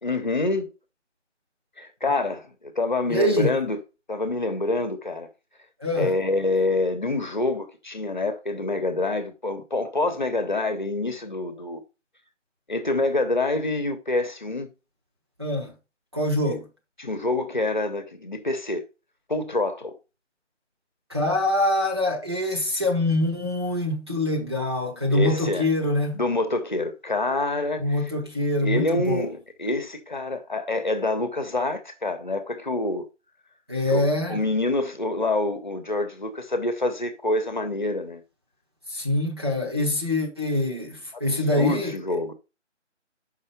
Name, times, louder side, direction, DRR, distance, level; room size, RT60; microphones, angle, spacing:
voice 1, 0.0-0.7 1.8-3.8 4.1-5.3 6.0-11.8 12.7-14.7 17.0-18.8 19.3-19.9 25.1-25.7 26.1-28.0 28.6-33.1 33.9-34.0 34.3-38.2 41.3-42.3, left 2 dB, 40° left, 1.1 m, -26 dB
voice 2, 3.1-3.5 5.8-6.1 15.4-15.7 16.1-16.7 21.1-26.2 27.8-29.3 33.7-34.4 38.9-41.9, left 1 dB, 20° right, 0.9 m, -24 dB
6.3 x 5.5 x 4.8 m
figure-of-eight pair, 160°, 37 cm